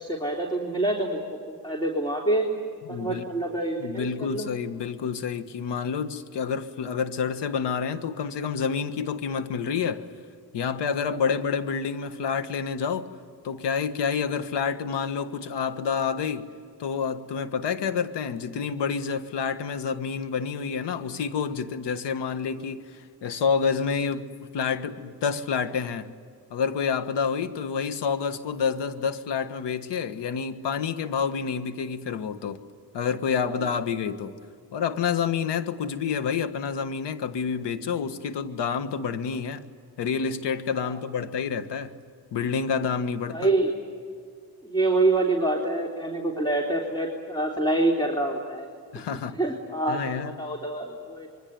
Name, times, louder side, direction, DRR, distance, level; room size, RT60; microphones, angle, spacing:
voice 1, 0.0-2.5 2.9-4.5 40.9-41.0 43.3-43.8 44.6-48.7 49.3-51.3, right 2 dB, 10° left, 1 dB, 3.6 m, -26 dB
voice 2, 2.9-3.2 3.8-10.0 10.5-13.1 13.4-16.4 16.8-26.1 26.5-32.6 32.9-34.3 34.7-39.6 40.0-41.9 42.3-43.5 48.9-49.4 49.9-50.3, left 6 dB, 85° left, 10 dB, 1.6 m, -28 dB
26.0 x 23.0 x 9.5 m, 2.2 s
cardioid pair, 90°, 41 cm